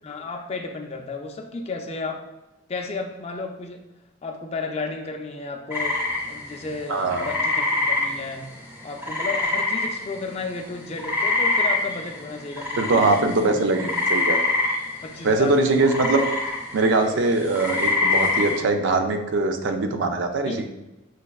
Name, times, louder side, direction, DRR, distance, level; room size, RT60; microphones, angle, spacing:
voice 1, 0.0-2.2 2.7-3.8 4.2-6.0 6.3-8.5 8.8-13.6 15.0-15.8 20.4-20.6, left 3 dB, 35° left, 3 dB, 0.4 m, -33 dB
sound 1, 5.7-10.4 10.7-18.6, left 3 dB, 10° right, 0.8 m, -25 dB
voice 2, 6.9-7.3 12.8-14.4 15.2-20.7, right 3 dB, 70° right, 5 dB, 0.4 m, -22 dB
6.3 x 2.1 x 2.3 m, 0.99 s
head